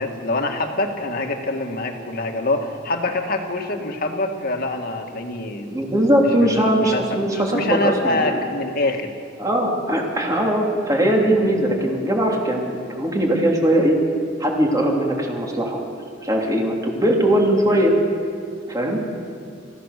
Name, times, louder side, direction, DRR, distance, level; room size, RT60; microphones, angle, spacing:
voice 1, 0.0-5.8 6.4-9.1, left 2 dB, 50° left, 3 dB, 2.1 m, -25 dB
voice 2, 5.7-8.4 9.4-14.0 14.4-15.8 16.2-17.9 18.7-19.0, right 1 dB, 20° right, -1 dB, 3.2 m, -20 dB
27.0 x 15.5 x 6.8 m, 2.3 s
head